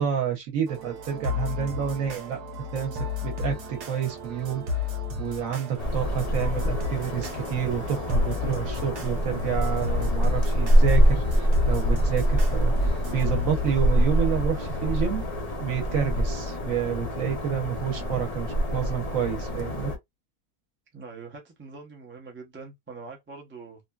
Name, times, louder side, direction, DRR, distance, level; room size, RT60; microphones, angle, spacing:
voice 1, 0.0-2.4 2.7-4.6 5.2-15.2 15.6-19.9, right 8 dB, 65° right, 1.2 m, -29 dB
sound 1, 0.7-14.9, left 5 dB, 90° right, 1.3 m, -34 dB
sound 2, 5.8-20.0, equal, 45° left, 0.5 m, -25 dB
voice 2, 17.8-18.3 20.9-23.8, right 4 dB, 15° right, 0.4 m, -44 dB
2.6 x 2.6 x 2.3 m
omnidirectional pair, 1.6 m